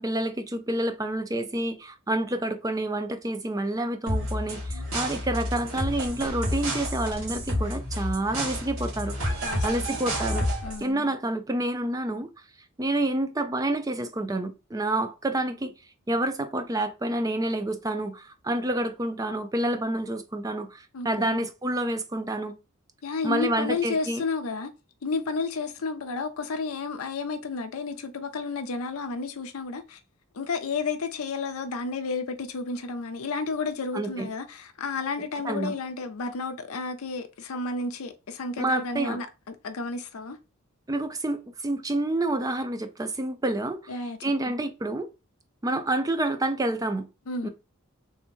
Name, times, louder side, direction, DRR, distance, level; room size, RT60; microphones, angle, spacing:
voice 1, 0.0-10.5 10.8-12.3 12.8-15.7 16.1-22.5 23.2-24.2 33.9-34.3 35.4-35.7 38.6-39.2 40.9-43.9 44.2-45.1 45.6-47.1 47.4-47.5, right 1 dB, 15° right, 0.4 m, -28 dB
sound 1, 4.1-10.8, equal, 85° right, 2.0 m, -30 dB
voice 2, 9.4-10.0 10.6-11.1 20.9-21.4 23.0-24.7 25.0-30.0 30.3-40.4 43.9-44.5 47.3-47.5, left 4 dB, 90° left, 0.5 m, -32 dB
3.4 x 2.9 x 4.3 m
head